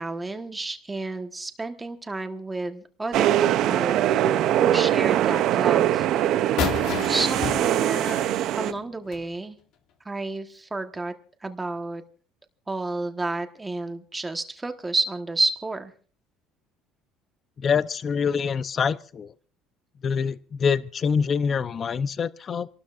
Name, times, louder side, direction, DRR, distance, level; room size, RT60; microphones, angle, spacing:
voice 1, 0.0-6.1 7.1-8.2 8.5-9.6 10.0-11.1 11.4-12.0 12.7-15.9, right 2 dB, 15° right, 7 dB, 1.3 m, -31 dB
sound 1, 3.1-8.7, right 12 dB, 60° right, 0.6 m, -22 dB
sound 2, 6.6-9.3, left 8 dB, 70° left, 2.0 m, -31 dB
voice 2, 17.6-19.3 20.0-22.7, left 6 dB, 35° left, 15 dB, 0.7 m, -25 dB
29.0 x 12.5 x 2.5 m, 0.41 s
cardioid pair, 125°, 0 cm